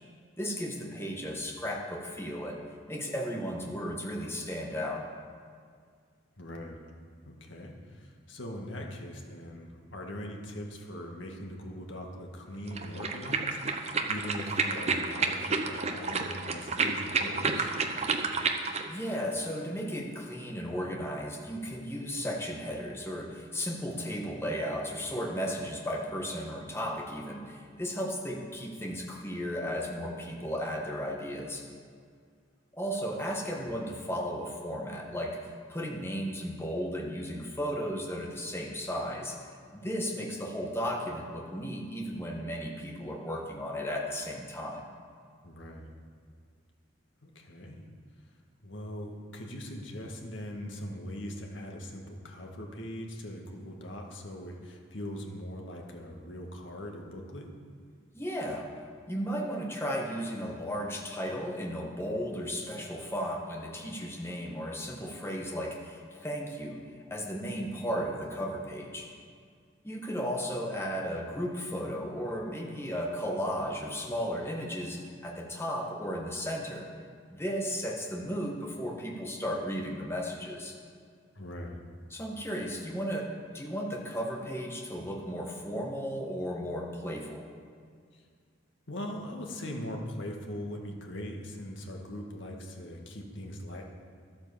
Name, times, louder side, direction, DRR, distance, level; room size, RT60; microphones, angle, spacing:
voice 1, 0.4-2.6 2.9-5.1 18.9-31.6 32.7-35.4 35.7-39.4 39.7-44.9 58.1-58.7 59.1-69.1 69.8-76.9 77.3-80.8 82.1-87.5, equal, 15° left, 0 dB, 1.5 m, -35 dB
voice 2, 6.4-6.8 7.3-17.7 33.5-33.6 45.4-45.9 47.2-47.9 48.6-57.5 81.4-81.8 88.1-88.2 88.9-93.8, equal, 75° left, 1 dB, 1.9 m, -41 dB
sound 1, 12.7-18.9, right 4 dB, 35° right, 0.8 m, -30 dB
12.5 x 8.8 x 7.0 m, 2.1 s
head